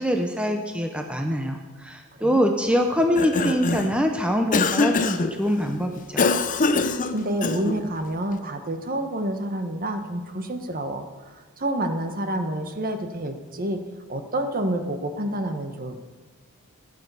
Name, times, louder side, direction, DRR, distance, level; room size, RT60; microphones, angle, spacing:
voice 1, 0.0-6.3, equal, 5° right, 3 dB, 0.9 m, -24 dB
Cough, 3.0-4.0 4.5-5.3 6.2-7.8, left 3 dB, 35° left, 0.7 m, -23 dB
voice 2, 7.1-11.1 11.6-13.8 14.1-16.0, right 1 dB, 40° right, 6 dB, 1.3 m, -28 dB
15.5 x 9.8 x 7.0 m, 1.4 s
head